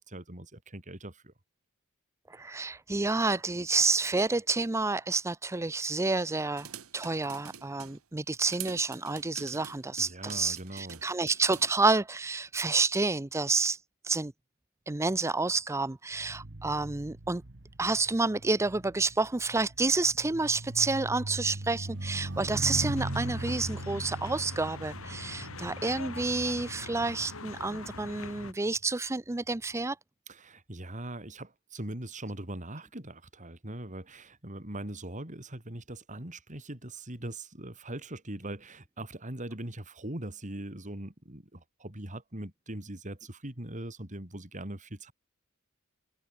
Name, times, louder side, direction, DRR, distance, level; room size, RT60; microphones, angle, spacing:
voice 1, 0.0-1.3 10.0-11.0 30.3-45.1, right 1 dB, 35° right, 3.9 m, -41 dB
voice 2, 2.3-6.7 6.9-14.3 14.9-17.4 17.8-30.0, right 3 dB, 15° right, 0.5 m, -29 dB
sound 1, 6.6-8.0 8.5-11.7, right 9 dB, 80° right, 1.7 m, -46 dB
sound 2, 16.1-27.8 28.5-28.8, right 1 dB, 55° right, 1.6 m, -40 dB
sound 3, 23.0-28.5, left 3 dB, 70° left, 4.0 m, -43 dB
head